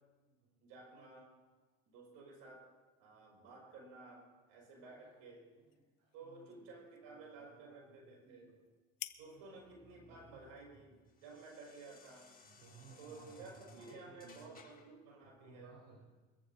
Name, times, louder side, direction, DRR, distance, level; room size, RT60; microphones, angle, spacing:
voice 1, 0.6-1.4 1.9-2.7 3.0-5.5 6.1-8.6 9.2-12.3 13.0-15.8, right 3 dB, 85° right, -1 dB, 5.7 m, -54 dB
sound 1, 4.7-12.4, left 15 dB, 70° left, 0.9 m, -57 dB
voice 2, 6.2-6.6 7.4-7.8 8.2-8.6 9.9-10.5 12.5-14.6 15.4-16.0, right 4 dB, 65° right, -4 dB, 3.9 m, -59 dB
sound 2, 9.2-15.0, left 4 dB, 25° left, 3.5 m, -63 dB
23.5 x 14.5 x 2.7 m, 1.3 s
supercardioid pair, 75°, 35 cm